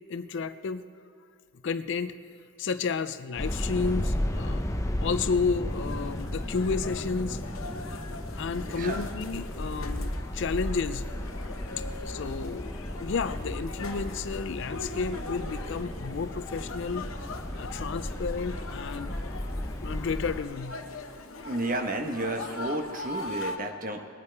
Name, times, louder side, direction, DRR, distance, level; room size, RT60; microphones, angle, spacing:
voice 1, 0.1-0.8 1.6-2.2 2.6-4.6 5.0-7.4 8.4-11.1 12.1-12.7 13.0-17.1 17.6-19.2 19.8-20.8, left 5 dB, 55° left, 13 dB, 0.4 m, -31 dB
sound 1, 3.4-20.4, left 1 dB, 15° left, 0.6 m, -34 dB
sound 2, 5.7-23.6, left 3 dB, 75° left, 0.9 m, -41 dB
voice 2, 8.5-9.1 10.3-10.4 21.4-24.1, right 2 dB, 40° right, 5 dB, 1.1 m, -32 dB
20.5 x 8.5 x 4.6 m, 2.6 s
head